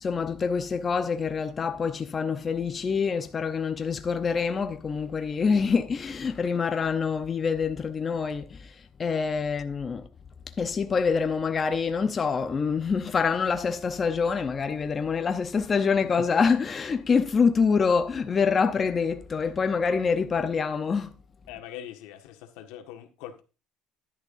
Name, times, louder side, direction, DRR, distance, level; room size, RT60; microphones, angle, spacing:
voice 1, 0.0-8.7 9.0-10.1 10.6-21.2, left 5 dB, 25° left, 0.7 m, -26 dB
voice 2, 21.5-23.4, left 11 dB, 90° left, 1.5 m, -42 dB
11.0 x 10.5 x 2.6 m
cardioid pair, 150°, 0 cm